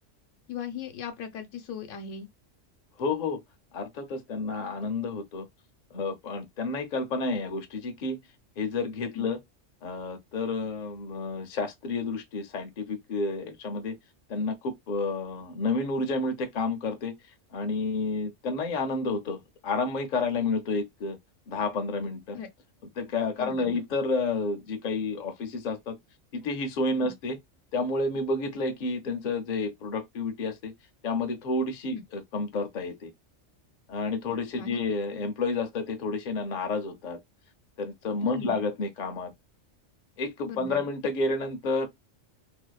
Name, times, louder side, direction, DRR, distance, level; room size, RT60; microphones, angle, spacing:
voice 1, 0.5-2.3 9.1-9.3 22.3-22.5 23.4-23.7 27.0-27.1 31.9-32.0 34.5-34.8 38.2-38.6 40.4-40.8, left 7 dB, 90° left, 1.0 m, -38 dB
voice 2, 3.0-3.4 3.7-5.5 5.9-8.2 8.6-9.4 9.8-14.0 14.3-17.1 17.5-21.2 21.5-22.4 23.0-26.0 26.3-27.4 27.7-30.7 31.0-33.1 33.9-37.2 37.8-39.3 40.2-41.9, left 3 dB, 50° left, 0.6 m, -30 dB
2.6 x 2.1 x 2.2 m
omnidirectional pair, 1.2 m